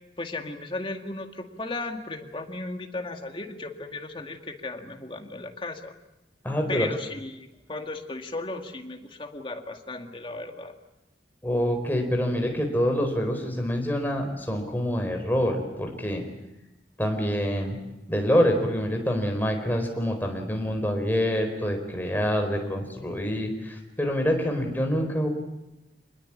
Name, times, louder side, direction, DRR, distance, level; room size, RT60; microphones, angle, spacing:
voice 1, 0.2-6.0 6.7-10.7, left 2 dB, 30° left, 5 dB, 2.1 m, -35 dB
voice 2, 6.4-6.9 11.4-16.2 17.0-17.8 18.1-25.3, equal, 10° left, 3 dB, 4.4 m, -26 dB
26.0 x 20.5 x 8.6 m, 0.96 s
head